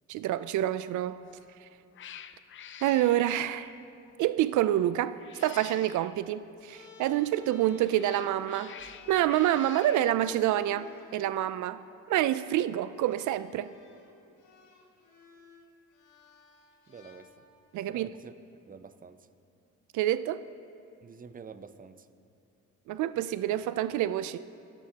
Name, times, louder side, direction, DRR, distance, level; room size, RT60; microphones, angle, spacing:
voice 1, 0.1-1.2 1.6-1.7 2.8-3.7 4.2-8.7 9.1-11.8 12.1-13.7 17.7-18.1 19.9-20.4 22.9-24.4, right 13 dB, 75° right, 14 dB, 0.4 m, -27 dB
Cat, 1.2-1.5 1.9-4.0 5.1-6.2 7.5-10.1, left 9 dB, 40° left, 0.5 m, -48 dB
sound 1, 6.7-11.2 12.2-12.4 12.9-17.7, left 5 dB, 90° left, 1.5 m, -55 dB
voice 2, 16.9-17.4 17.9-18.3 18.7-19.2 21.0-22.1, right 6 dB, 30° right, 11 dB, 0.6 m, -48 dB
25.5 x 9.0 x 2.9 m, 2.7 s
cardioid pair, 90°, 30 cm